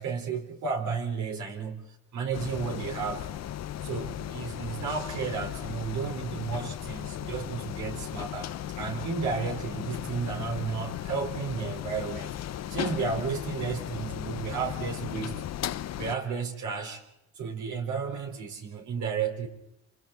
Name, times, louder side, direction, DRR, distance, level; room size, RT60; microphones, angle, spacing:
voice 1, 0.0-1.8 2.1-3.3 3.8-12.4 12.7-15.4 16.0-17.0 17.4-19.5, right 5 dB, 75° right, 4.2 m, -33 dB
sound 1, 2.3-16.2, left 11 dB, 60° left, 0.7 m, -36 dB
27.5 x 26.0 x 3.8 m
cardioid pair, 90°, 30 cm